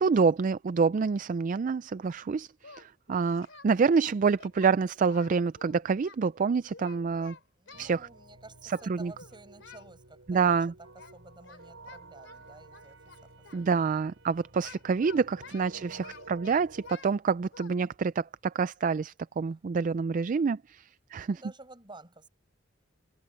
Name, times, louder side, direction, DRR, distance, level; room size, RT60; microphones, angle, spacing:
voice 1, 0.0-7.4 7.8-8.1 8.9-9.1 10.3-10.7 13.5-21.4, right 5 dB, 40° right, 0.3 m, -27 dB
Singing, 2.6-3.7 4.0-6.2 6.7-8.0 8.7-8.9 9.2-9.9 11.0-11.2 11.4-13.6 14.6-17.2 17.5-17.7, left 5 dB, 75° left, 3.4 m, -51 dB
voice 2, 7.6-14.0 15.5-16.2 21.1-22.3, right 2 dB, 25° right, 6.1 m, -52 dB
sound 1, 7.7-16.9, right 2 dB, 85° right, 5.1 m, -52 dB
head